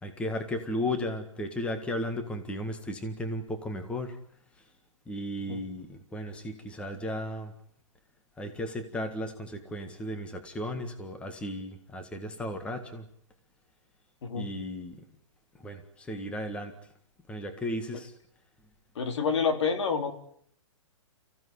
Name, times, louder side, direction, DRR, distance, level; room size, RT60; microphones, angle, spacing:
voice 1, 0.0-4.2 5.1-7.5 8.4-13.0 14.3-15.0 15.6-16.7 17.3-18.1, left 1 dB, 5° left, 7 dB, 1.7 m, -35 dB
voice 2, 19.0-20.1, left 5 dB, 55° left, 7 dB, 3.8 m, -28 dB
30.0 x 16.0 x 9.9 m, 0.68 s
hypercardioid pair, 155°, 17 cm